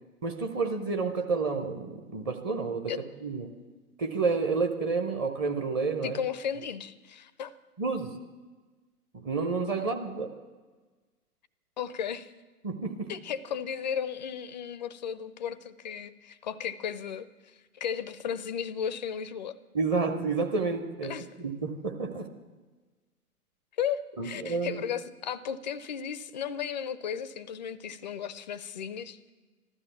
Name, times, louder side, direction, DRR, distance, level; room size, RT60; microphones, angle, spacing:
voice 1, 0.2-3.5 4.0-6.2 7.8-8.2 9.1-10.3 12.6-13.1 19.7-22.3 24.2-24.8, right 4 dB, 15° right, 5 dB, 0.6 m, -30 dB
voice 2, 6.0-7.5 11.8-12.3 13.1-17.3 17.7-19.6 21.0-21.3 23.8-29.3, left 8 dB, 30° left, 15 dB, 0.4 m, -35 dB
14.0 x 12.5 x 7.1 m, 1.3 s
figure-of-eight pair, 120°, 46 cm